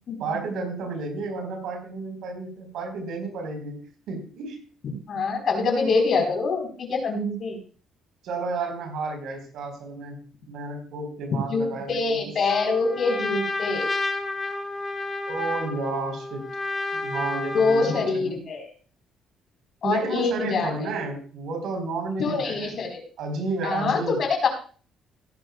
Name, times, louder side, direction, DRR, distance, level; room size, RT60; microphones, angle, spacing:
voice 1, 0.2-4.6 8.2-12.3 15.3-16.4 16.9-18.4 19.8-22.7 23.2-24.2, right 3 dB, 70° right, 4 dB, 4.2 m, -32 dB
voice 2, 5.1-7.6 11.5-13.9 17.5-18.7 19.8-20.9 22.2-23.0 23.6-24.5, left 4 dB, 45° left, 3 dB, 4.1 m, -25 dB
Trumpet, 12.5-18.1, left 2 dB, 20° left, 3.1 m, -31 dB
17.5 x 10.5 x 2.3 m, 0.40 s
cardioid pair, 135°, 0 cm